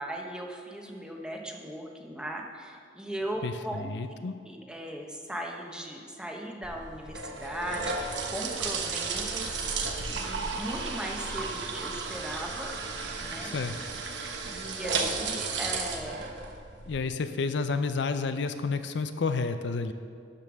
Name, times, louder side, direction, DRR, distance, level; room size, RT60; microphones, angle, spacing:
voice 1, 0.0-9.6 10.1-12.7 13.2-13.5 14.4-16.4, right 1 dB, 5° right, 0 dB, 1.0 m, -38 dB
voice 2, 3.4-4.3 13.4-13.8 16.9-19.9, left 4 dB, 70° left, 9 dB, 0.5 m, -30 dB
sound 1, 6.6-17.0, right 4 dB, 70° right, 1.1 m, -34 dB
12.0 x 5.4 x 6.2 m, 2.2 s
head